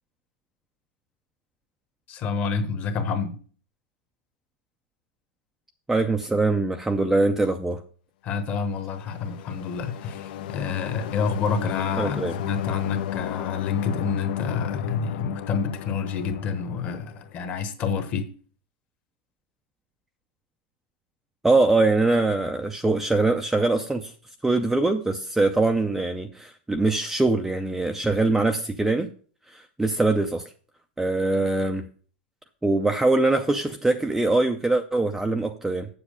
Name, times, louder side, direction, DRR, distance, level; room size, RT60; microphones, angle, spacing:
voice 1, 2.1-3.4 8.2-18.3, left 6 dB, 30° left, 1.0 m, -28 dB
voice 2, 5.9-7.8 12.0-12.3 21.4-24.1 24.4-29.1 29.5-30.5 31.0-31.9 32.6-35.9, right 2 dB, 5° right, 0.4 m, -23 dB
sound 1, 8.8-17.5, left 11 dB, 60° left, 0.5 m, -34 dB
8.1 x 7.2 x 4.9 m
supercardioid pair, 155°, 6 cm